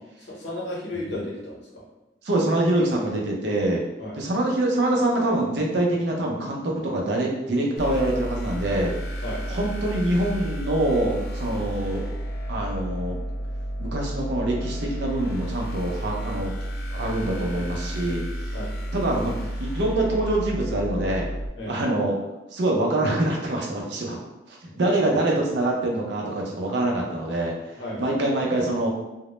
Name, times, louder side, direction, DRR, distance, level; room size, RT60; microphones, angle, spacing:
voice 1, 0.0-1.8 4.0-4.2 9.2-9.4 18.5-18.7 21.6-21.7 27.8-28.1, left 1 dB, 80° left, -5 dB, 0.8 m, -34 dB
voice 2, 2.2-3.8 4.1-9.2 9.5-12.1 12.5-13.2 13.8-16.5 16.9-18.6 18.9-21.3 21.7-22.2 22.5-24.2 24.5-27.5 28.0-28.9, right 1 dB, 70° right, -1 dB, 0.5 m, -25 dB
sound 1, 7.8-21.5, right 1 dB, 55° left, 0.3 m, -31 dB
2.1 x 2.0 x 2.9 m, 0.96 s
head